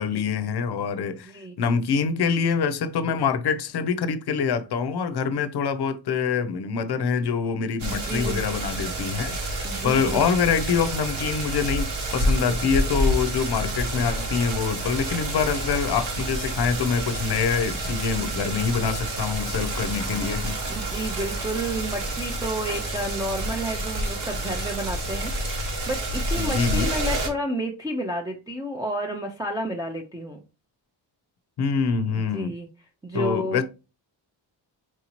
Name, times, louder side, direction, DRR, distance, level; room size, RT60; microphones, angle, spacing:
voice 1, 0.0-1.3 1.6-20.6 26.3-26.9 31.6-32.5 33.1-33.6, left 6 dB, 55° left, 0.6 m, -25 dB
voice 2, 1.2-1.5 7.9-8.4 9.6-10.3 18.2-18.3 20.7-25.3 25.6-30.4 32.3-32.7 33.0-33.6, right 1 dB, 10° right, 0.5 m, -31 dB
sound 1, 7.8-27.3, right 1 dB, 65° right, 1.4 m, -29 dB
4.7 x 2.8 x 2.9 m
wide cardioid pair, 125°, 46 cm